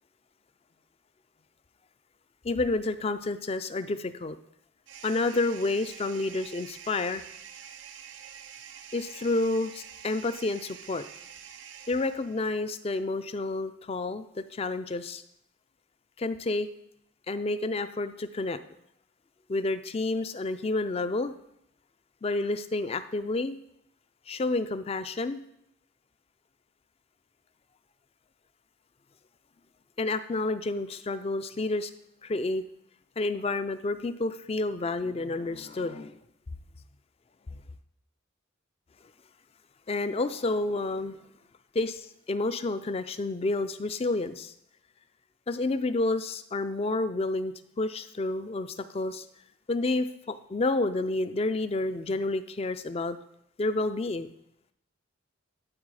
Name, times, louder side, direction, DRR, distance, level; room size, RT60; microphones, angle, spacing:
voice 1, 2.4-4.4 5.0-7.2 8.9-11.0 11.9-15.2 16.2-16.7 17.3-18.6 19.5-21.3 22.2-23.6 24.3-25.4 30.0-31.9 32.2-32.6 33.2-36.2 39.9-41.2 41.7-44.5 45.5-49.3 49.7-53.2 53.6-54.3, left 2 dB, 30° left, 12 dB, 0.4 m, -29 dB
sound 1, 4.9-12.6, right 8 dB, 65° right, 0.5 m, -47 dB
12.5 x 4.1 x 4.8 m, 0.75 s
head